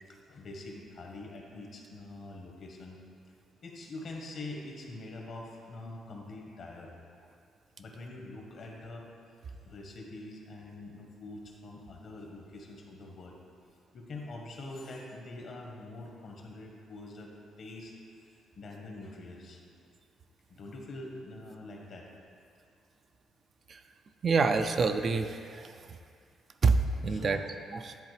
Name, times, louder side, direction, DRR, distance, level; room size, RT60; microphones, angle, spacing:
voice 1, 0.1-3.0 3.6-6.9 7.8-9.1 9.6-13.4 13.9-17.9 18.2-19.6 20.5-22.1 27.1-27.4, left 2 dB, 60° left, 0 dB, 1.1 m, -44 dB
voice 2, 24.2-25.7 26.6-26.7 27.0-27.4 27.8-27.9, right 4 dB, 50° right, 7 dB, 0.3 m, -26 dB
10.5 x 3.7 x 3.2 m, 2.3 s
cardioid pair, 90°, 0 cm